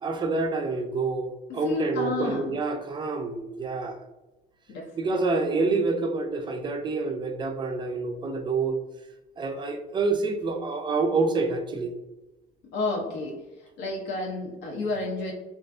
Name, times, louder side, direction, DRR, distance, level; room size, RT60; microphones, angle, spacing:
voice 1, 0.0-4.0 4.9-8.8 9.4-11.9, right 3 dB, 25° right, 5 dB, 0.4 m, -27 dB
voice 2, 1.5-2.6 4.7-4.9 12.7-13.4 13.8-15.3, left 2 dB, 80° left, -1 dB, 0.5 m, -30 dB
2.4 x 2.3 x 2.4 m, 1.0 s
cardioid pair, 110°, 17 cm